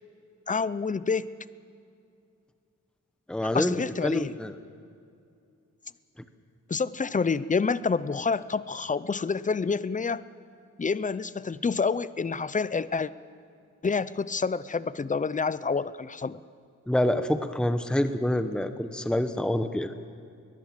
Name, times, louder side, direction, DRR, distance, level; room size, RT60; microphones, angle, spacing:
voice 1, 0.5-1.3 3.5-4.3 6.7-10.2 10.8-13.1 13.8-16.4, left 5 dB, 25° left, 17 dB, 0.5 m, -28 dB
voice 2, 3.3-3.8 4.0-4.5 16.9-19.9, left 1 dB, 5° left, 9 dB, 0.9 m, -26 dB
21.5 x 20.0 x 7.6 m, 2.4 s
wide cardioid pair, 125°, 30 cm